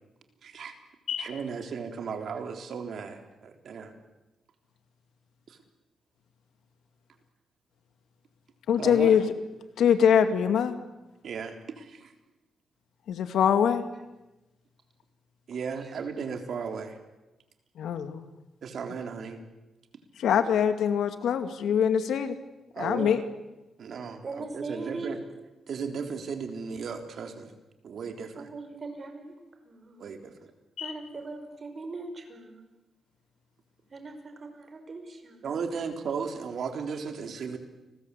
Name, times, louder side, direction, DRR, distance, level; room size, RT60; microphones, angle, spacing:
voice 1, 0.4-0.7 1.2-4.0 5.5-5.6 8.8-9.1 11.2-12.0 15.5-17.0 18.6-19.4 22.7-23.1 23.8-25.2 25.7-27.5 27.8-28.5 30.0-30.3 35.4-37.6, right 6 dB, 65° right, 5 dB, 3.6 m, -35 dB
voice 2, 8.7-9.3 9.8-10.8 13.1-13.8 17.8-18.2 20.2-22.4 22.8-23.2 30.8-30.9, left 8 dB, 90° left, 8 dB, 2.3 m, -23 dB
voice 3, 24.2-25.2 28.4-29.4 29.6-30.1 30.8-32.6 33.9-35.6 37.1-37.6, right 3 dB, 40° right, 7 dB, 5.6 m, -40 dB
30.0 x 21.0 x 8.4 m, 1.0 s
cardioid pair, 115°, 0 cm